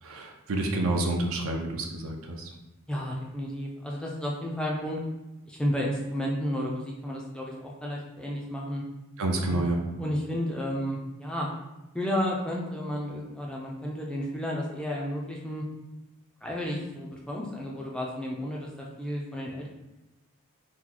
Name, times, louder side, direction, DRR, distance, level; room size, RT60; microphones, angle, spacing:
voice 1, 0.0-2.5 9.2-9.8, right 2 dB, 65° right, 2 dB, 0.5 m, -29 dB
voice 2, 2.9-5.0 5.5-8.8 9.4-9.7 10.0-11.5 11.9-15.6 16.4-19.7, equal, 5° left, -3 dB, 0.4 m, -32 dB
2.9 x 2.2 x 3.7 m, 1.0 s
head